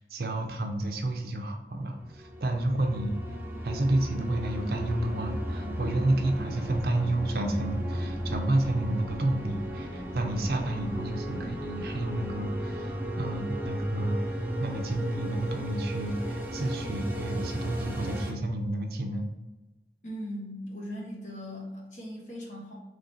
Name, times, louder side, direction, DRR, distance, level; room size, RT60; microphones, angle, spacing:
voice 1, 0.0-3.2 3.6-19.3, right 1 dB, 55° right, 4 dB, 0.6 m, -30 dB
sound 1, 2.1-18.3, equal, 10° right, 0.4 m, -34 dB
voice 2, 20.0-22.8, equal, 45° left, -4 dB, 1.3 m, -39 dB
3.8 x 3.2 x 4.3 m, 1.1 s
head